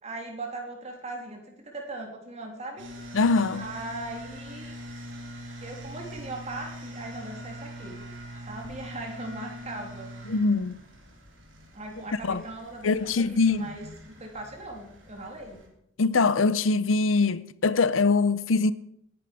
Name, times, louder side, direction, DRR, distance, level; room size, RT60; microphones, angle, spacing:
voice 1, 0.0-2.8 3.6-4.8 5.6-8.0 8.4-10.1 11.7-15.6, right 2 dB, 35° right, 3.2 m, -39 dB
sound 1, 2.8-15.7, equal, 70° right, 3.6 m, -43 dB
voice 2, 3.1-3.7 10.2-10.8 12.2-12.4 12.8-13.7 16.0-18.7, left 4 dB, 80° left, 0.7 m, -23 dB
19.0 x 10.5 x 5.1 m
head